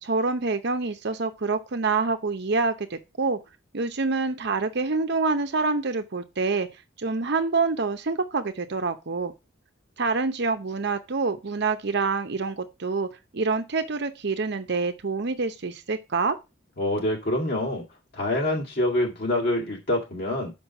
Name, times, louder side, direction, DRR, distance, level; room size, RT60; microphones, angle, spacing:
voice 1, 0.0-3.4 3.7-6.7 7.0-9.3 10.0-16.4, right 4 dB, 60° right, 0.8 m, -26 dB
voice 2, 16.8-17.8 18.1-20.5, left 1 dB, 55° left, 2.2 m, -26 dB
5.7 x 5.3 x 5.7 m
head